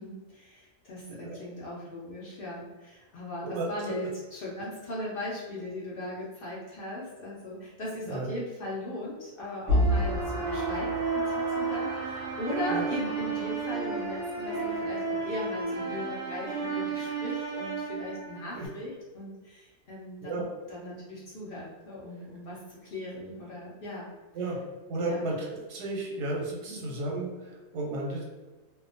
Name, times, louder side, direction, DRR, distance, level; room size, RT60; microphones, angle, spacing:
voice 1, 0.0-20.4 20.7-24.1 24.9-25.3 26.6-26.9, left 1 dB, 70° left, -6 dB, 0.5 m, -38 dB
sound 1, 9.7-18.7, right 2 dB, 55° right, 1.1 m, -30 dB
voice 2, 24.9-25.4 25.7-28.2, right 2 dB, 85° right, -2 dB, 1.2 m, -33 dB
2.7 x 2.1 x 2.5 m, 1.3 s
omnidirectional pair, 1.7 m